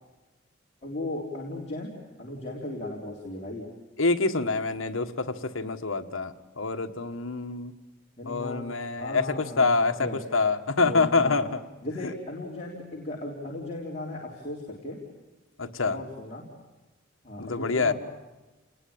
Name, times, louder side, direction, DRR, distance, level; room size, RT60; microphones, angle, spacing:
voice 1, 0.8-1.9 2.2-3.7 8.2-8.6 9.0-10.2 10.8-11.5 11.8-15.0 15.8-16.4 17.2-17.9, left 1 dB, 35° left, -3 dB, 3.7 m, -36 dB
voice 2, 4.0-7.7 8.2-11.5 12.0-12.1 15.6-16.0 17.4-17.9, left 3 dB, 80° left, 8 dB, 1.4 m, -26 dB
29.5 x 20.0 x 8.7 m, 1.1 s
head